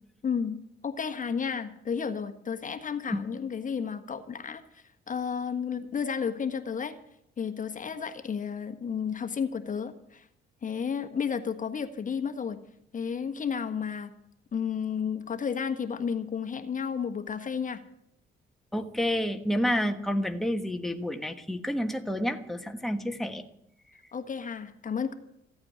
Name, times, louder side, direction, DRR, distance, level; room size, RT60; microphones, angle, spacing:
voice 1, 0.2-0.6 0.8-6.9 7.4-10.3 10.6-12.6 12.9-14.1 14.5-17.8 24.1-25.1, left 6 dB, 40° left, 7 dB, 1.4 m, -32 dB
voice 2, 18.7-23.4 23.9-24.0, equal, ahead, 5 dB, 1.4 m, -29 dB
15.5 x 8.8 x 9.7 m, 0.77 s
cardioid pair, 90°, 20 cm